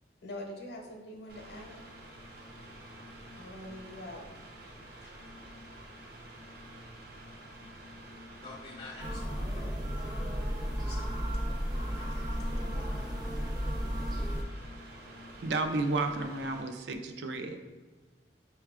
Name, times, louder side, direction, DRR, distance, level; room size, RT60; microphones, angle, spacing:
voice 1, 0.2-1.8 3.4-4.2 5.0-5.1, left 1 dB, 65° left, 0 dB, 0.7 m, -44 dB
Mechanical fan, 1.3-16.6, right 1 dB, 55° right, 0.8 m, -49 dB
voice 2, 8.4-10.0 10.7-11.1 11.9-12.7, left 3 dB, 35° left, -2 dB, 0.4 m, -49 dB
sound 1, 9.0-14.4, equal, 25° right, 0.5 m, -33 dB
voice 3, 15.4-17.6, right 3 dB, 75° right, 6 dB, 0.4 m, -32 dB
5.5 x 2.2 x 3.5 m, 1.4 s
head